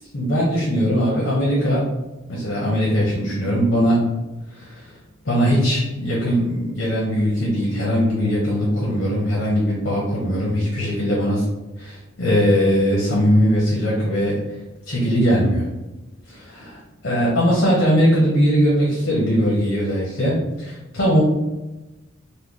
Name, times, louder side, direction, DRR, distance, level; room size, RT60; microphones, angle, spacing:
voice 1, 0.1-1.9 2.3-4.1 4.5-4.8 5.2-11.4 11.8-14.4 14.9-15.7 16.3-21.2, equal, 65° left, -5 dB, 0.9 m, -20 dB
3.1 x 2.2 x 3.7 m, 1.1 s
head